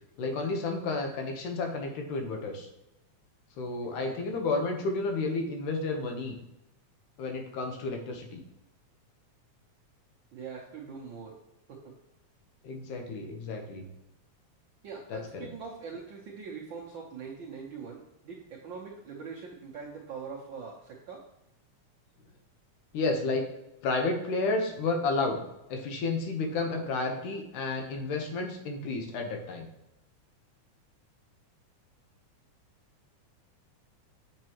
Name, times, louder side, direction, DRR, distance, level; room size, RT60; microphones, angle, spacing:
voice 1, 0.2-2.7 3.6-6.4 7.2-8.4 12.6-13.9 15.1-15.5 22.9-23.5 23.8-25.4 25.7-29.7, left 3 dB, 85° left, 3 dB, 2.6 m, -31 dB
voice 2, 3.8-4.4 10.3-11.4 11.7-11.9 14.8-21.2, right 5 dB, 80° right, -3 dB, 1.0 m, -43 dB
7.3 x 6.7 x 3.0 m, 0.93 s
omnidirectional pair, 3.5 m